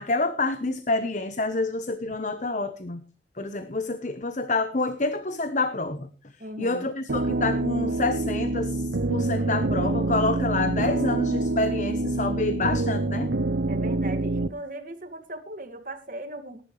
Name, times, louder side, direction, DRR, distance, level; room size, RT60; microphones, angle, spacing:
voice 1, 0.0-3.0 3.4-6.1 6.6-13.3, left 3 dB, 45° left, 10 dB, 1.0 m, -28 dB
voice 2, 6.4-6.9 13.7-16.6, right 1 dB, 45° right, 7 dB, 2.0 m, -38 dB
sound 1, 7.1-14.5, right 2 dB, 70° right, 0.7 m, -26 dB
20.0 x 11.5 x 3.2 m, 0.33 s
head